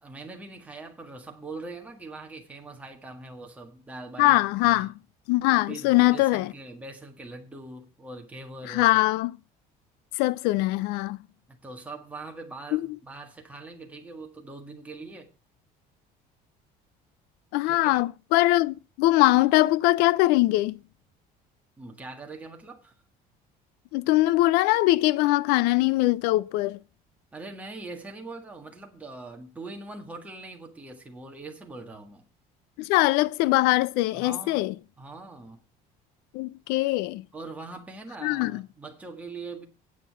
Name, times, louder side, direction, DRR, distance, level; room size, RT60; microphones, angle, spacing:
voice 1, 0.0-4.9 5.7-9.0 11.5-15.3 17.7-18.0 21.8-22.9 27.3-32.3 34.1-34.7 35.0-35.6 37.3-39.7, right 3 dB, 10° right, 1.7 m, -42 dB
voice 2, 4.2-4.9 5.3-6.5 8.7-9.3 10.2-11.2 12.7-12.8 17.5-20.8 23.9-26.8 32.8-34.7 36.3-37.2 38.2-38.6, left 18 dB, 80° left, 0.4 m, -22 dB
9.4 x 5.7 x 8.3 m
cardioid pair, 180°, 16 cm